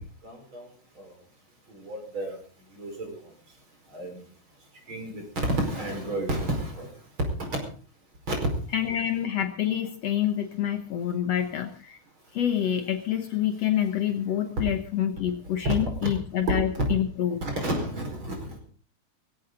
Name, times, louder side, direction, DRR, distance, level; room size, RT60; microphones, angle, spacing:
voice 1, 0.2-0.6 1.7-2.4 2.8-3.1 3.9-4.2 4.9-6.9 7.4-7.5 8.3-8.4 15.6-15.7 17.4-18.6, right 1 dB, 40° right, 3 dB, 5.6 m, -31 dB
voice 2, 8.7-12.0 12.3-17.4, left 10 dB, 65° left, 7 dB, 2.1 m, -27 dB
18.5 x 16.5 x 3.9 m, 0.41 s
omnidirectional pair, 3.5 m